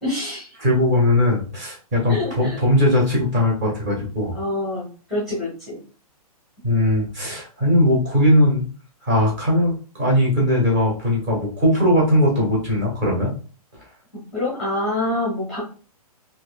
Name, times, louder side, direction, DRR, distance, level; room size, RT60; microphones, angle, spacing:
voice 1, 0.0-0.5 2.1-2.6 4.3-5.8 14.3-15.6, left 1 dB, ahead, -7 dB, 1.1 m, -26 dB
voice 2, 0.6-4.3 6.6-8.7 9.0-13.3, left 1 dB, 25° right, -3 dB, 1.6 m, -19 dB
4.4 x 2.8 x 2.3 m, 0.37 s
hypercardioid pair, 170°, 20 cm